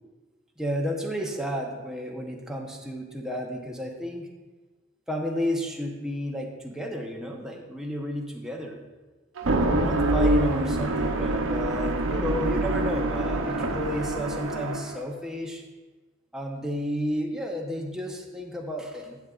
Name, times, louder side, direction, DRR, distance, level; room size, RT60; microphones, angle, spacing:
voice 1, 0.6-4.3 5.1-8.8 9.7-15.6 16.3-19.2, equal, 5° right, -1 dB, 0.8 m, -32 dB
sound 1, 9.4-15.0, right 2 dB, 80° right, 0.7 m, -25 dB
11.5 x 7.9 x 2.4 m, 1.3 s
head